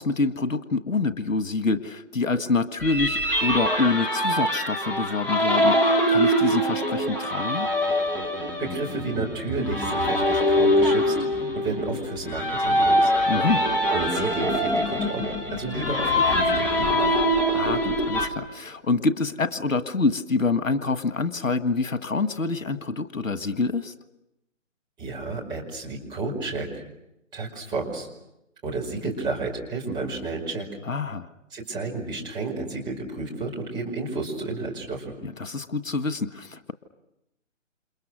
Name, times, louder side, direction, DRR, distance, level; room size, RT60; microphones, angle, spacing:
voice 1, 0.0-7.7 13.3-13.6 17.5-23.9 30.8-31.3 35.2-36.7, left 3 dB, 80° left, 10 dB, 1.8 m, -26 dB
sound 1, 2.8-18.3, equal, 5° left, 1.4 m, -23 dB
voice 2, 8.6-11.1 11.5-13.0 13.9-17.2 25.0-26.8 27.3-28.1 28.6-30.7 31.5-35.1, right 3 dB, 10° right, -2 dB, 5.3 m, -31 dB
29.5 x 28.0 x 6.5 m, 0.87 s
figure-of-eight pair, 150°, 39 cm